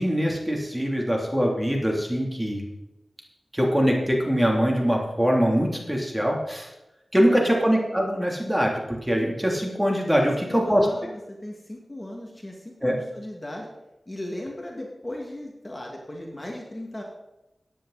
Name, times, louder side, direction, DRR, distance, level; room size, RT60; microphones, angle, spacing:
voice 1, 0.0-2.7 3.5-6.7 7.1-10.9 12.8-12.9, equal, 10° right, 0 dB, 3.3 m, -23 dB
voice 2, 7.1-7.5 10.2-13.7 14.1-17.0, left 1 dB, 25° left, -1 dB, 2.5 m, -37 dB
14.5 x 10.0 x 4.3 m, 0.92 s
cardioid pair, 50°, 0 cm